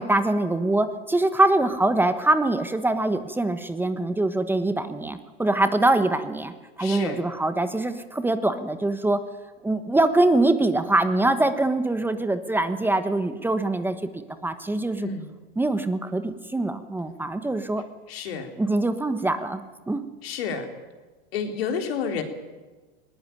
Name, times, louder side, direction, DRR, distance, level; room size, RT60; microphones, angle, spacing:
voice 1, 0.0-9.2 9.6-13.9 14.4-15.1 15.6-17.8 18.6-19.6 19.9-20.0, right 2 dB, 5° right, 10 dB, 1.3 m, -23 dB
voice 2, 6.8-7.2 15.0-15.3 18.1-18.5 20.2-20.7 21.3-22.2, left 6 dB, 75° left, 5 dB, 4.0 m, -30 dB
19.5 x 19.5 x 9.4 m, 1.2 s
hypercardioid pair, 125°, 30 cm